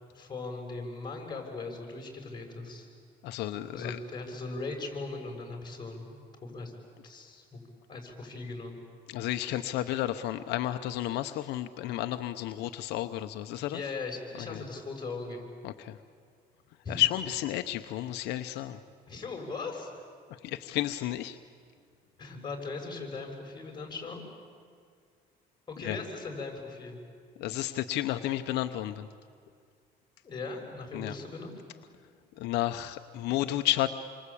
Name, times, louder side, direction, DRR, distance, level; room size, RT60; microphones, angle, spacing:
voice 1, 0.1-2.9 3.7-6.1 6.4-6.7 7.0-7.6 7.9-8.8 13.7-15.4 16.8-17.0 19.1-19.9 22.2-24.2 25.7-27.0 30.2-31.5, left 3 dB, 25° left, 2 dB, 6.6 m, -39 dB
voice 2, 3.2-4.0 9.1-13.8 14.5-14.6 15.6-16.0 16.9-18.8 20.4-21.4 25.8-26.0 27.4-29.1 30.9-31.1 32.4-33.9, left 14 dB, 85° left, 8 dB, 0.9 m, -31 dB
28.0 x 24.5 x 8.6 m, 2.1 s
cardioid pair, 110°, 17 cm